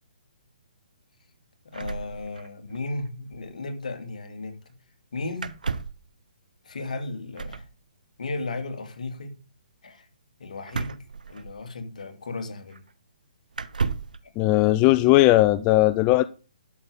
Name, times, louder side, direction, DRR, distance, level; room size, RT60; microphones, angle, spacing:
voice 1, 1.6-4.7 5.1-5.6 6.6-7.7 8.2-9.4 9.8-10.1 10.4-12.8 14.2-14.3, left 3 dB, 70° left, 2.7 m, -35 dB
sound 1, 1.7-2.8 3.1-3.2 3.3-3.5 5.4-6.1 7.3-7.7 10.7-11.8 12.7-12.8 13.5-14.2, right 5 dB, 80° right, 1.0 m, -32 dB
voice 2, 14.4-16.2, left 17 dB, 25° left, 0.5 m, -18 dB
12.0 x 6.8 x 5.0 m
hypercardioid pair, 140°, 4 cm